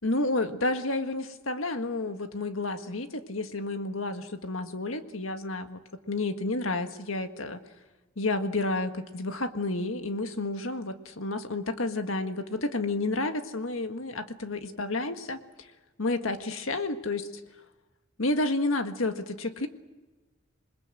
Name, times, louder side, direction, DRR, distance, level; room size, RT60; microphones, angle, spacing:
voice 1, 0.0-5.8 6.1-7.6 8.2-15.4 16.0-17.3 18.2-19.7, left 2 dB, 85° left, 7 dB, 1.7 m, -30 dB
27.5 x 21.0 x 7.8 m, 1.2 s
head